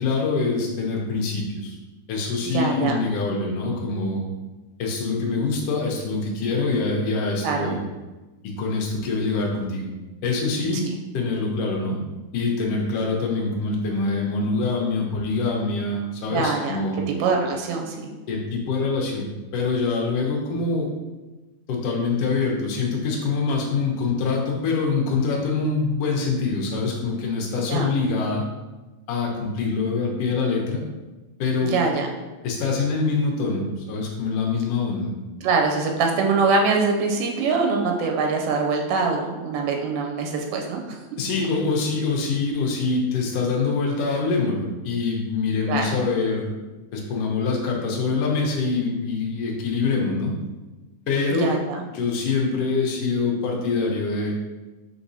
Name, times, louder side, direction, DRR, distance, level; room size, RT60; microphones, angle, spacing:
voice 1, 0.0-1.8 2.1-4.2 4.8-7.8 8.4-9.9 10.2-10.8 11.1-12.0 12.3-17.0 18.3-20.9 21.7-28.4 29.1-30.8 31.4-31.8 32.4-35.1 41.2-46.5 46.9-50.3 51.1-51.6 51.9-54.3, left 4 dB, 70° left, -1 dB, 1.5 m, -24 dB
voice 2, 2.5-3.0 7.4-7.7 16.3-16.8 17.2-18.1 27.7-27.9 31.6-32.1 35.4-41.0 45.7-46.0 51.4-51.8, right 4 dB, 90° right, 2 dB, 2.2 m, -23 dB
4.7 x 4.0 x 2.7 m, 1.1 s
omnidirectional pair, 3.6 m